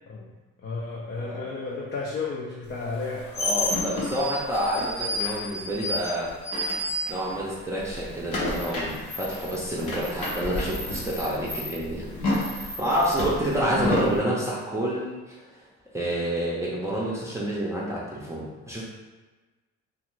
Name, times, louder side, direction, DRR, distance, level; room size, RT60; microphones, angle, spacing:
voice 1, 0.6-3.3, left 3 dB, 40° left, -3 dB, 0.5 m, -32 dB
voice 2, 1.1-1.5 3.3-6.3 7.1-15.4 15.9-18.8, equal, 10° right, -7 dB, 0.6 m, -28 dB
sound 1, 2.9-7.5 7.8-14.2, left 1 dB, 75° left, 0.9 m, -30 dB
2.4 x 2.4 x 3.0 m, 1.2 s
cardioid pair, 90°, 30 cm